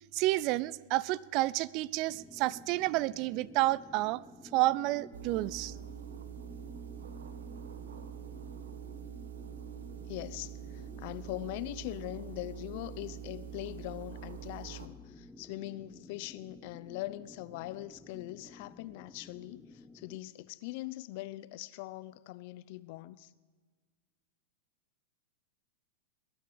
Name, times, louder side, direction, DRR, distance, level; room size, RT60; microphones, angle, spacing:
voice 1, 0.0-4.2 4.5-5.7, right 18 dB, 50° right, 0.4 m, -30 dB
sound 1, 2.1-20.2, left 2 dB, 10° left, 0.8 m, -53 dB
sound 2, 5.1-14.9, right 10 dB, 85° right, 1.2 m, -45 dB
voice 2, 5.3-5.9 10.1-23.3, left 17 dB, 55° left, 0.6 m, -42 dB
20.5 x 9.0 x 7.0 m
hypercardioid pair, 110°, 0 cm